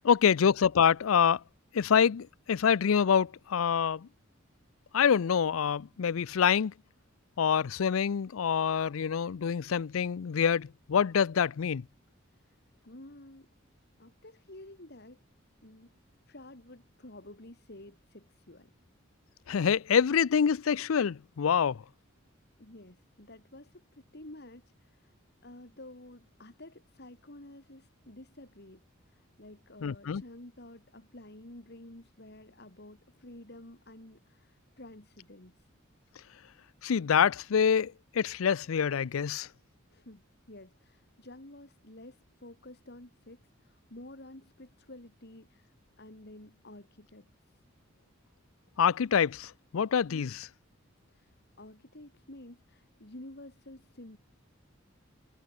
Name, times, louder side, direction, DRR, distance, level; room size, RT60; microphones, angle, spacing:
voice 1, 0.0-1.4 1.7-4.1 4.9-6.7 7.4-11.8 19.5-21.8 29.8-30.2 36.8-39.5 48.8-50.4, left 7 dB, 90° left, 0.5 m, -26 dB
voice 2, 12.3-13.5 14.0-15.2 15.6-15.9 16.3-18.7 22.6-25.1 25.4-35.7 39.9-47.6 50.1-50.4 51.1-54.2, left 1 dB, 55° left, 3.1 m, -51 dB
head